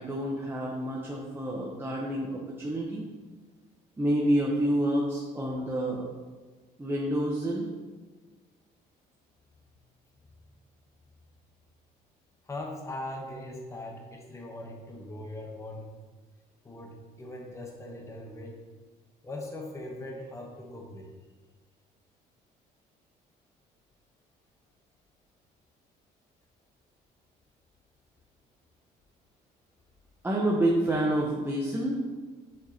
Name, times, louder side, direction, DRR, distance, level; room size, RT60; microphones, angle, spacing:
voice 1, 0.0-3.0 4.0-6.1 6.8-7.7 30.2-32.0, right 1 dB, 15° right, -4 dB, 0.9 m, -28 dB
voice 2, 12.4-15.9 16.6-18.6 19.2-21.1, left 1 dB, 15° left, 0 dB, 1.1 m, -40 dB
7.8 x 6.2 x 2.9 m, 1.3 s
cardioid pair, 110°, 17 cm